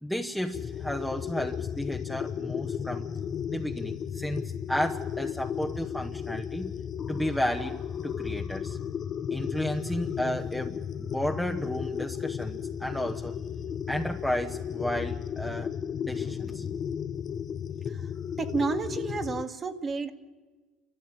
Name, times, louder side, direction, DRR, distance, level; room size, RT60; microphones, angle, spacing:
voice 1, 0.0-3.1 3.5-6.7 7.1-8.8 9.3-13.3 13.9-15.7 16.0-16.8, equal, ahead, 3 dB, 1.0 m, -33 dB
sound 1, 0.5-19.5, left 8 dB, 45° left, 0.7 m, -34 dB
voice 2, 18.4-20.1, right 4 dB, 30° right, 7 dB, 1.8 m, -31 dB
29.5 x 13.5 x 8.8 m, 1.3 s
supercardioid pair, 85°, 0 cm